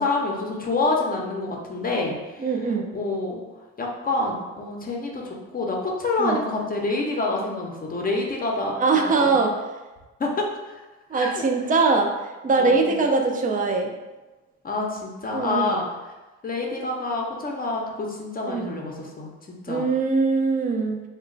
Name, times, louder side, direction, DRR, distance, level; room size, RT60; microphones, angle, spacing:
voice 1, 0.0-2.5 2.9-3.4 3.8-9.4 10.2-10.8 11.1-11.4 12.6-13.0 14.6-15.8 16.4-19.9, left 3 dB, 30° left, 0 dB, 0.7 m, -27 dB
voice 2, 2.4-2.9 6.2-6.4 8.8-9.5 11.1-13.9 15.3-15.8 18.5-18.7 19.7-21.0, right 4 dB, 25° right, 2 dB, 0.5 m, -22 dB
3.0 x 2.2 x 3.8 m, 1.1 s
cardioid pair, 90°, 30 cm